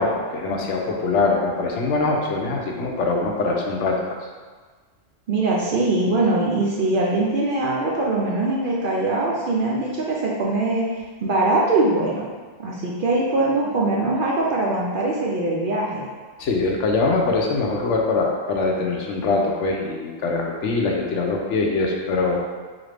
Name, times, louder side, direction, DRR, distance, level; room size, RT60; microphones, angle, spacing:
voice 1, 0.0-4.2 16.4-22.5, left 3 dB, 75° left, 0 dB, 0.9 m, -23 dB
voice 2, 5.3-10.8 11.2-12.2 12.6-16.0, right 2 dB, 60° right, -4 dB, 0.6 m, -22 dB
4.0 x 2.6 x 3.2 m, 1.4 s
omnidirectional pair, 1.3 m